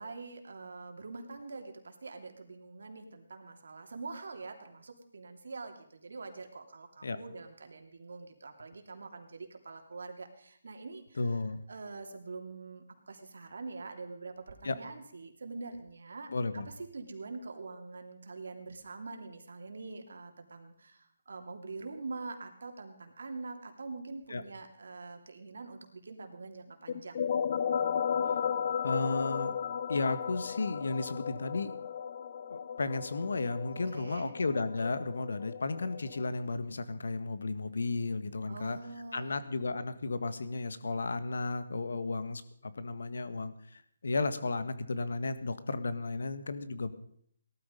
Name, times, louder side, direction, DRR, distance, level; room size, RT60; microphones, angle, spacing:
voice 1, 0.0-11.3 11.7-16.6 16.9-27.2 33.7-34.3 38.5-39.3, right 3 dB, 70° right, 4 dB, 3.0 m, -45 dB
voice 2, 11.2-11.6 14.6-14.8 16.3-16.7 24.3-24.4 28.8-29.6 29.9-31.7 32.5-38.8 39.1-46.9, left 3 dB, 70° left, 12 dB, 1.6 m, -34 dB
sound 1, 26.9-36.3, left 7 dB, 35° left, 0.7 m, -35 dB
18.5 x 13.0 x 5.3 m, 0.65 s
hypercardioid pair, 170°, 0 cm